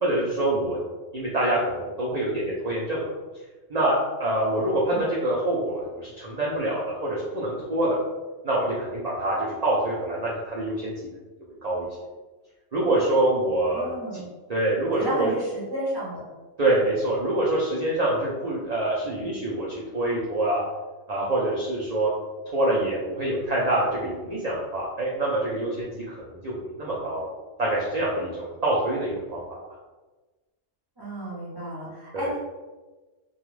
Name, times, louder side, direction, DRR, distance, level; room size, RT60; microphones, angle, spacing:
voice 1, 0.0-0.8 1.1-3.1 3.7-8.0 8.4-10.9 11.6-11.9 12.7-14.2 14.5-15.3 16.6-20.6 21.1-22.1 22.5-27.3 27.6-29.4 32.1-32.3, right 1 dB, 75° right, -5 dB, 0.3 m, -25 dB
voice 2, 13.7-14.3 15.0-16.2 31.0-32.4, equal, 25° right, -7 dB, 0.6 m, -32 dB
2.3 x 2.3 x 3.1 m, 1.2 s
omnidirectional pair, 1.4 m